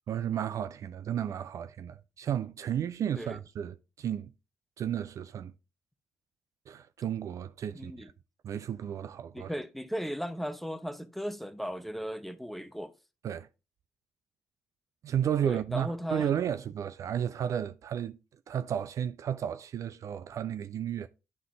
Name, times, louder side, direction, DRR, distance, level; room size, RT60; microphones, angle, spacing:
voice 1, 0.1-4.3 4.8-5.5 6.7-8.1 8.4-9.5 13.2-13.5 15.0-18.2 18.5-21.1, right 9 dB, 40° right, 0.4 m, -33 dB
voice 2, 7.7-8.1 9.3-12.9 15.5-16.3, equal, ahead, 0.7 m, -36 dB
11.0 x 3.7 x 3.5 m
figure-of-eight pair, 45°, 8 cm